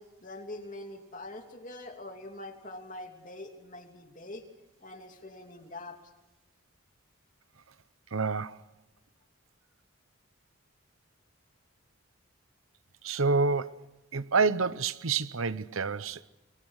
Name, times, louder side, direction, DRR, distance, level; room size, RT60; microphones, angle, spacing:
voice 1, 0.0-4.4 4.8-6.0, left 2 dB, 40° left, 2.9 m, -44 dB
voice 2, 8.1-8.6 13.0-13.9 14.1-16.2, right 4 dB, 80° right, 0.9 m, -28 dB
29.5 x 23.0 x 6.5 m
head